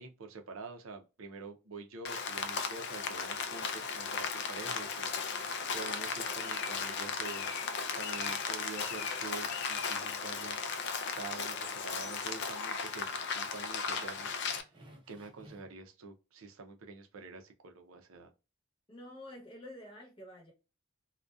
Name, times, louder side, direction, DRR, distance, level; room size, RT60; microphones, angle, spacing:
voice 1, 0.0-7.6 8.0-10.6 11.1-14.4 15.1-18.3, right 4 dB, 70° right, 0.5 m, -47 dB
Rain, 2.1-14.6, left 5 dB, 50° left, 0.3 m, -36 dB
sound 1, 14.1-15.8, right 1 dB, 20° right, 0.5 m, -58 dB
voice 2, 18.9-20.5, left 1 dB, 25° left, 0.8 m, -48 dB
2.5 x 2.2 x 2.2 m
head